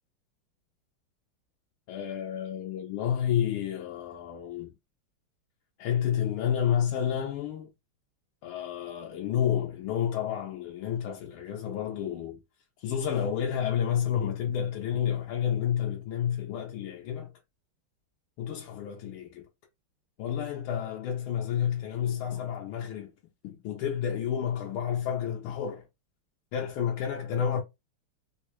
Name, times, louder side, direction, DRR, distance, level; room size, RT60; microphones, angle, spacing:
voice 1, 1.9-4.7 5.8-7.7 8.4-12.4 12.8-17.3 18.4-19.5 20.2-23.1 23.4-25.8 26.5-27.6, left 9 dB, 90° left, 1.5 m, -30 dB
4.1 x 2.1 x 2.9 m
omnidirectional pair, 2.3 m